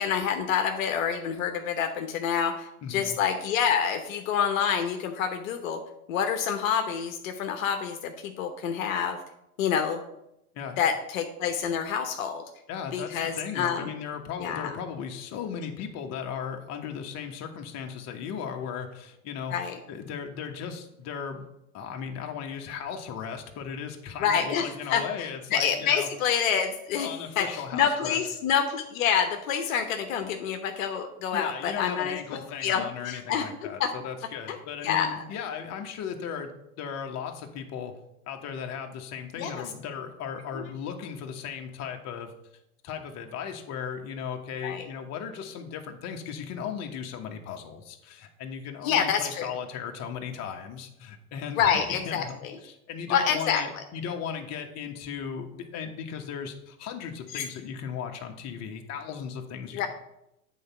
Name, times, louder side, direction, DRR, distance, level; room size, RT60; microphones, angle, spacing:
voice 1, 0.0-5.8 6.1-9.2 9.6-10.0 10.8-12.4 12.9-13.9 14.4-14.8 19.5-19.8 24.2-25.0 25.5-27.1 27.4-32.2 32.6-33.4 33.8-33.9 34.5-34.6 34.8-35.2 39.4-39.6 40.5-40.6 44.6-44.9 48.8-49.5 51.6-52.5 53.1-53.6 57.3-57.5 59.7-59.9, left 7 dB, 60° left, 6 dB, 1.0 m, -27 dB
voice 2, 2.8-3.2 10.5-10.8 12.7-21.4 21.7-26.1 27.0-28.2 31.3-36.5 36.8-37.9 38.3-42.3 42.8-59.9, left 7 dB, 35° left, 3 dB, 1.2 m, -36 dB
8.4 x 4.1 x 5.7 m, 0.84 s
hypercardioid pair, 105°, 45 cm